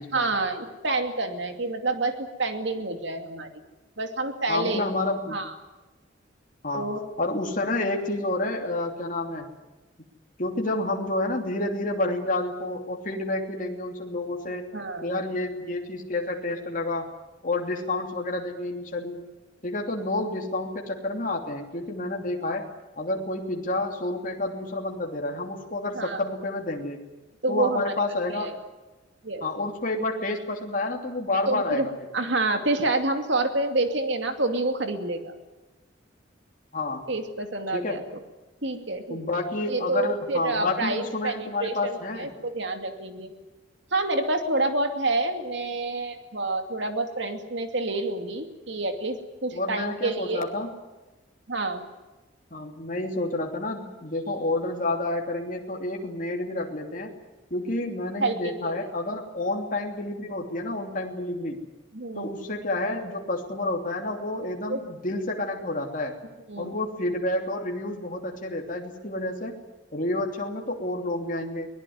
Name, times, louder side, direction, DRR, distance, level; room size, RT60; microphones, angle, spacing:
voice 1, 0.0-3.5 4.0-4.9 5.3-5.5 6.7-7.1 14.7-15.2 25.9-26.2 27.4-28.0 28.3-28.5 29.2-29.5 31.5-31.9 32.1-35.3 37.1-38.0 38.6-39.4 39.7-43.3 43.9-50.5 51.5-51.9 58.2-58.8 61.9-62.3 64.7-64.8 66.5-66.8, right 2 dB, 60° right, 6 dB, 2.7 m, -28 dB
voice 2, 4.5-5.4 6.6-6.9 7.2-9.5 10.4-14.6 15.0-17.1 17.4-19.2 19.6-22.6 23.0-27.0 27.5-28.5 29.4-31.9 36.7-37.0 37.7-38.0 39.1-42.3 49.5-50.7 52.5-57.1 57.5-61.6 62.1-66.2 66.6-69.5 69.9-71.7, left 2 dB, 40° left, 1 dB, 2.9 m, -29 dB
23.5 x 19.0 x 9.5 m, 1.1 s
head